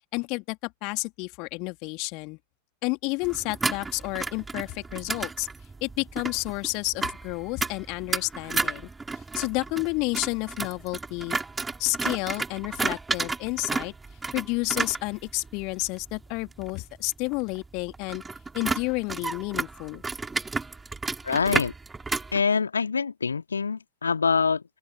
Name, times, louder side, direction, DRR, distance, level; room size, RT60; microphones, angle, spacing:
voice 1, 0.1-2.4 2.8-5.5 5.8-8.9 9.3-11.4 11.8-13.9 14.3-18.2 18.5-20.0, left 28 dB, 45° left, 2.9 m, -30 dB
sound 1, 3.2-22.4, right 3 dB, 10° right, 3.4 m, -33 dB
voice 2, 21.2-21.7 22.3-24.6, left 5 dB, 75° left, 2.1 m, -25 dB
open air
figure-of-eight pair, 90°, 0 cm